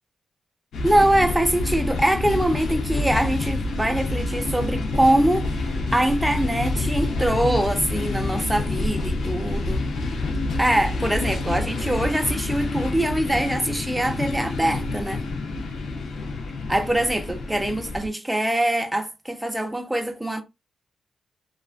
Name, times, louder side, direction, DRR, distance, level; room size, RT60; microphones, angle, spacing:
sound 1, 0.7-18.1, left 2 dB, 80° left, 0.6 m, -27 dB
voice 1, 0.8-9.9 10.6-15.2 16.7-20.4, right 1 dB, 10° right, 0.5 m, -23 dB
2.4 x 2.2 x 2.4 m
cardioid pair, 65°, 0 cm